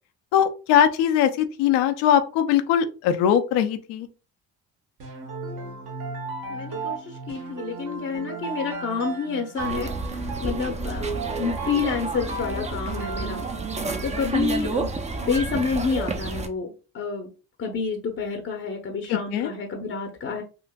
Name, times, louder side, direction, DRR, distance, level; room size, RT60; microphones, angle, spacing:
voice 1, 0.3-4.1 19.1-19.5, left 9 dB, 75° left, 8 dB, 0.6 m, -21 dB
sound 1, 5.0-14.2, right 4 dB, 60° right, 1.3 m, -35 dB
voice 2, 6.5-9.9 10.4-13.4 14.0-17.3 17.6-20.4, left 5 dB, 35° left, 3 dB, 0.7 m, -29 dB
sound 2, 9.6-16.5, right 3 dB, 15° right, 0.5 m, -30 dB
3.7 x 2.4 x 2.2 m, 0.34 s
supercardioid pair, 70°, 40 cm